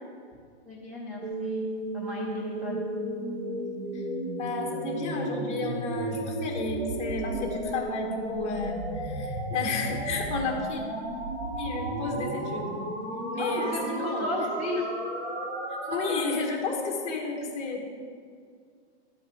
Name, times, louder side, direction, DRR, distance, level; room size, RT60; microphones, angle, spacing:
voice 1, 0.7-1.6 1.9-2.8 13.4-14.9, left 1 dB, 5° right, -3 dB, 0.4 m, -34 dB
sound 1, 1.2-16.2, right 1 dB, 90° right, 3.4 m, -33 dB
voice 2, 4.4-10.8 11.6-12.7 13.3-14.3 15.8-17.9, left 4 dB, 20° left, 0 dB, 1.7 m, -32 dB
13.0 x 8.1 x 5.0 m, 2.2 s
hypercardioid pair, 160°, 34 cm